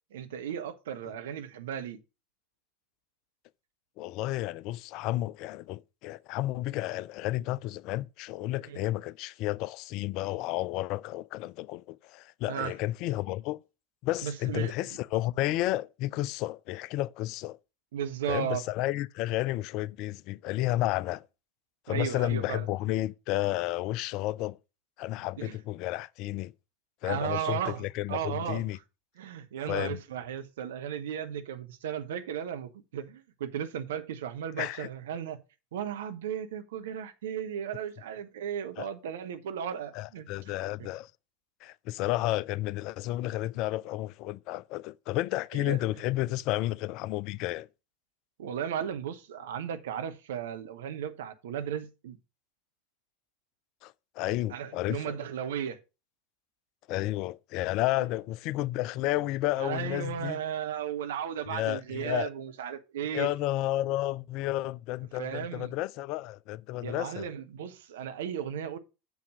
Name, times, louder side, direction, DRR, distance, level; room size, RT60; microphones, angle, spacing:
voice 1, 0.1-2.0 8.7-8.8 12.5-12.7 14.2-14.7 17.9-18.6 21.9-22.7 25.4-25.6 27.0-27.8 28.1-28.7 29.2-35.4 35.7-40.3 40.8-40.9 45.5-45.8 48.4-52.2 54.5-55.8 59.6-63.3 65.2-65.7 66.8-68.8, right 9 dB, 60° right, 0.9 m, -35 dB
voice 2, 4.0-13.6 14.0-17.6 18.3-21.3 21.9-24.6 25.0-26.5 27.0-28.8 29.7-30.0 34.6-34.9 38.8-38.9 39.9-41.1 41.6-47.7 53.8-55.2 56.9-60.4 61.5-62.3 63.1-67.3, left 16 dB, 45° left, 0.3 m, -32 dB
6.9 x 4.8 x 6.1 m
figure-of-eight pair, 80°, 0 cm